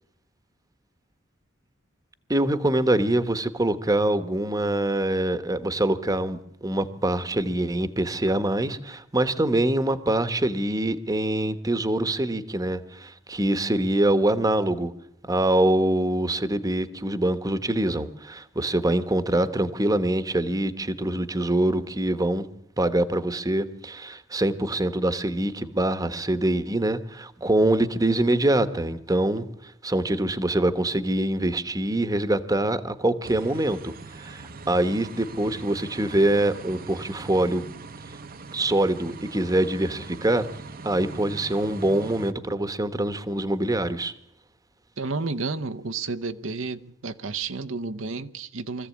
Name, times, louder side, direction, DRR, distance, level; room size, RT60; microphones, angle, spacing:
voice 1, 2.3-14.9 15.3-22.5 22.8-37.7 38.5-40.5 40.8-44.1, right 1 dB, 20° right, 1.1 m, -24 dB
sound 1, 33.2-42.3, right 4 dB, 50° right, 0.9 m, -41 dB
voice 2, 45.0-48.9, right 4 dB, 80° right, 0.9 m, -31 dB
24.5 x 15.0 x 8.5 m
head